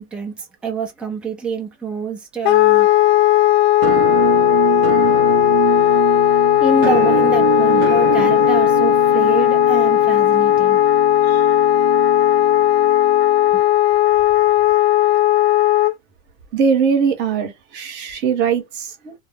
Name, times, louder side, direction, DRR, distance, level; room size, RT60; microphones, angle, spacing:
voice 1, 0.0-2.9 6.6-10.8 13.5-13.6, right 4 dB, 5° right, 0.5 m, -26 dB
Wind instrument woodwind instrument, 2.4-15.9, left 14 dB, 70° left, 0.5 m, -15 dB
Musical instrument, 3.8-13.6, right 13 dB, 60° right, 0.4 m, -25 dB
voice 2, 16.5-19.1, right 6 dB, 35° right, 0.9 m, -21 dB
2.2 x 2.0 x 3.3 m
supercardioid pair, 140°, 32 cm